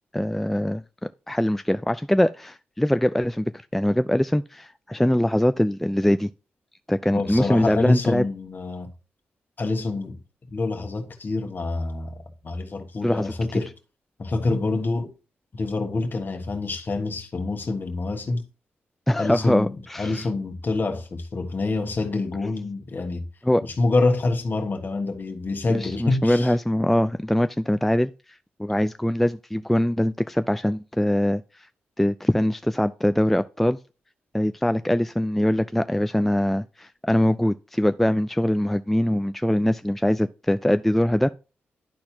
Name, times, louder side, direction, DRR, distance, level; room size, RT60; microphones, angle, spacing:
voice 1, 0.1-0.8 1.3-6.3 6.9-8.3 13.0-13.3 19.1-20.2 23.4-23.6 25.7-28.1 28.6-31.4 32.0-33.8 34.3-41.3, left 1 dB, 5° left, 0.3 m, -22 dB
voice 2, 7.1-8.9 9.6-10.2 10.5-12.2 12.4-13.7 14.2-15.1 15.5-18.5 19.1-23.3 23.6-26.5, left 3 dB, 45° left, 1.4 m, -26 dB
11.5 x 4.3 x 2.8 m
cardioid pair, 65°, 4 cm